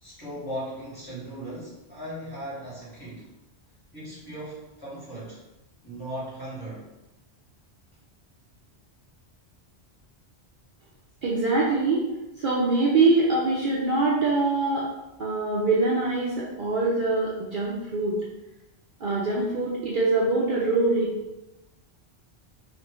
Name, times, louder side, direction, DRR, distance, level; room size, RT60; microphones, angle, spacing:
voice 1, 0.0-3.3 3.9-5.4 5.8-6.9, right 1 dB, 20° left, -10 dB, 1.4 m, -37 dB
voice 2, 11.2-12.0 12.4-14.9 15.2-18.2 19.0-21.1, right 3 dB, 60° right, -5 dB, 0.7 m, -23 dB
3.1 x 2.5 x 3.0 m, 0.98 s
omnidirectional pair, 1.1 m